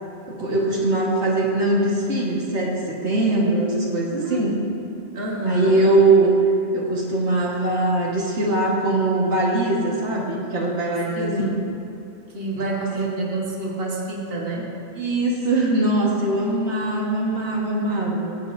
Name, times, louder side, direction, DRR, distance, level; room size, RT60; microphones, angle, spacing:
voice 1, 0.3-4.5 5.5-6.3 6.7-11.4 13.0-13.1 15.0-18.4, right 2 dB, 90° right, -4 dB, 1.8 m, -21 dB
voice 2, 4.1-4.5 5.1-5.8 11.1-11.7 12.3-14.8, right 2 dB, 60° right, -3 dB, 1.5 m, -28 dB
22.0 x 7.4 x 2.6 m, 2.6 s
omnidirectional pair, 1.1 m